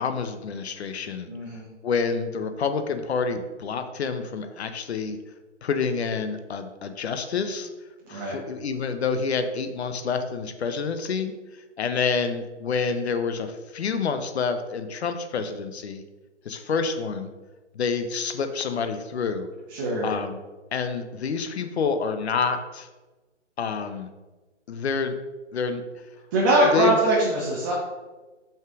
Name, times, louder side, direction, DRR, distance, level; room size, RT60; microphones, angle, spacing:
voice 1, 0.0-1.3 1.8-5.2 5.6-7.7 8.1-11.3 11.8-16.0 16.4-17.3 17.7-19.5 20.0-20.4 20.7-22.9 23.6-24.1 24.7-25.2 25.5-25.8 26.6-27.0, left 5 dB, 60° left, 8 dB, 0.8 m, -28 dB
voice 2, 1.3-1.7 8.1-8.4 19.7-20.1 26.3-27.7, right 2 dB, 15° right, -6 dB, 0.8 m, -22 dB
5.8 x 5.7 x 3.6 m, 1.2 s
hypercardioid pair, 160°, 36 cm